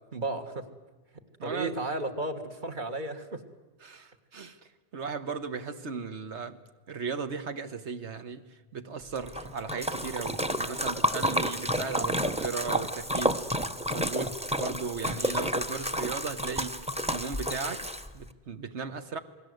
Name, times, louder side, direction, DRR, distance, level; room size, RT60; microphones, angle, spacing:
voice 1, 0.1-0.7 1.4-3.4 11.1-11.4 14.5-14.6, right 2 dB, 45° right, 1.9 m, -34 dB
voice 2, 1.4-1.8 3.8-4.6 4.9-6.6 6.9-8.4 8.7-13.4 13.9-19.2, right 5 dB, 85° right, 1.6 m, -36 dB
Splash splatter, 9.2-18.3, equal, 5° right, 0.8 m, -30 dB
28.5 x 20.5 x 7.9 m
omnidirectional pair, 1.1 m